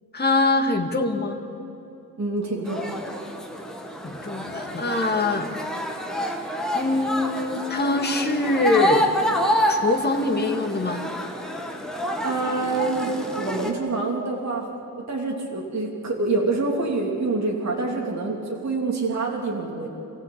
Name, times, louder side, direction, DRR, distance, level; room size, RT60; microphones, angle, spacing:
voice 1, 0.1-1.4 4.0-5.5 6.7-9.1 9.7-11.0, left 2 dB, 30° left, 3 dB, 2.1 m, -23 dB
voice 2, 2.2-2.8 12.2-14.7 15.0-19.9, right 3 dB, 50° right, -2 dB, 3.2 m, -26 dB
sound 1, 2.7-13.7, equal, ahead, 2.0 m, -28 dB
27.0 x 16.5 x 8.8 m, 2.9 s
wide cardioid pair, 165°, 35 cm